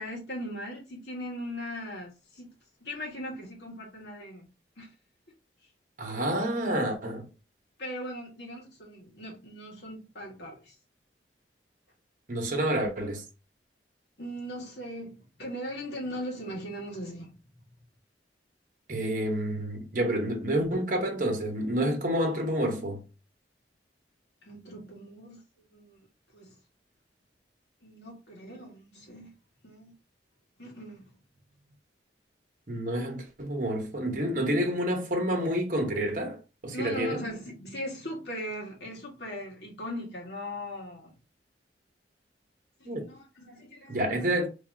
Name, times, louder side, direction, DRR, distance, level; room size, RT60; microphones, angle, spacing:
voice 1, 0.0-2.5 2.8-4.5 4.8-4.9 6.1-6.5 7.8-10.8 14.2-17.5 24.4-25.4 25.7-26.0 26.3-26.5 27.8-29.4 29.6-30.0 30.6-31.1 36.7-41.2 42.8-44.3, equal, 70° left, 1.7 m, -39 dB
voice 2, 6.0-7.2 12.3-13.2 18.9-23.0 32.7-36.4 36.6-37.2 42.8-43.0 43.9-44.5, right 1 dB, 45° right, 1.0 m, -29 dB
3.4 x 3.2 x 2.7 m
head